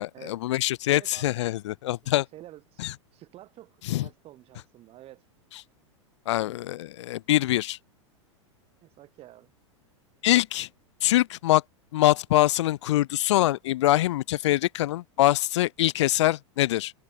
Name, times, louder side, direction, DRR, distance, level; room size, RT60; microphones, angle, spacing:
voice 1, 0.0-2.3 2.8-2.9 3.9-4.0 6.3-7.8 10.2-10.7 11.0-11.6 11.9-16.9, left 15 dB, 65° left, 0.5 m, -24 dB
voice 2, 0.8-1.3 2.0-5.3 8.8-9.5, right 14 dB, 40° right, 3.2 m, -49 dB
hypercardioid pair, 100°, 16 cm